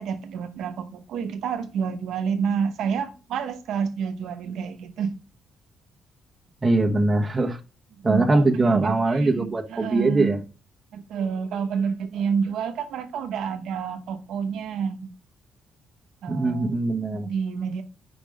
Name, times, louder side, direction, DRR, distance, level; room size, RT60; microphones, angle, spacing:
voice 1, 0.0-5.2 8.0-10.4 10.9-15.1 16.2-16.8 17.1-17.8, right 6 dB, 80° right, 0.9 m, -29 dB
voice 2, 6.6-7.6 8.0-10.4 16.3-17.3, right 2 dB, 20° right, 1.2 m, -22 dB
5.0 x 4.6 x 5.3 m
cardioid pair, 90°, 0 cm